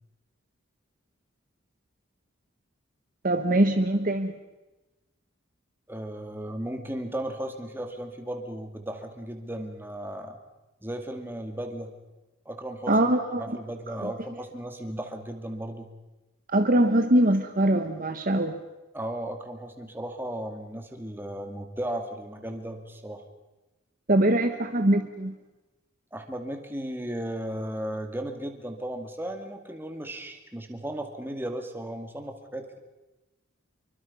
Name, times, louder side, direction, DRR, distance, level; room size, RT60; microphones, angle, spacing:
voice 1, 3.2-4.3 12.9-13.6 14.0-14.1 16.5-18.6 24.1-25.3, right 1 dB, 40° right, 6 dB, 1.3 m, -22 dB
voice 2, 5.9-10.4 10.8-11.9 12.5-13.1 13.4-15.9 18.9-23.2 26.1-32.8, right 1 dB, 10° right, 4 dB, 2.5 m, -35 dB
27.0 x 23.5 x 5.6 m, 1.1 s
head